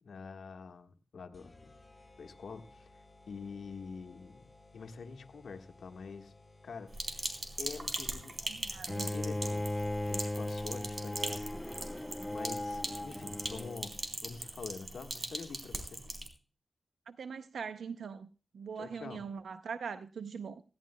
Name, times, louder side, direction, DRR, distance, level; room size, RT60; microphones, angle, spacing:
voice 1, 0.0-1.7 2.2-4.5 4.7-6.3 6.6-8.4 8.7-11.5 11.8-13.9 14.2-16.1 18.7-19.3, left 5 dB, 85° left, 1.4 m, -46 dB
sound 1, 1.3-12.7, left 2 dB, 30° left, 5.2 m, -59 dB
Sink (filling or washing), 6.9-16.3, right 2 dB, 50° right, 3.7 m, -40 dB
voice 2, 8.5-9.1 17.1-18.3 18.5-20.6, right 6 dB, 90° right, 0.6 m, -42 dB
Bowed string instrument, 8.9-13.9, left 1 dB, 15° left, 0.5 m, -37 dB
17.0 x 16.5 x 2.2 m
cardioid pair, 55°, 0 cm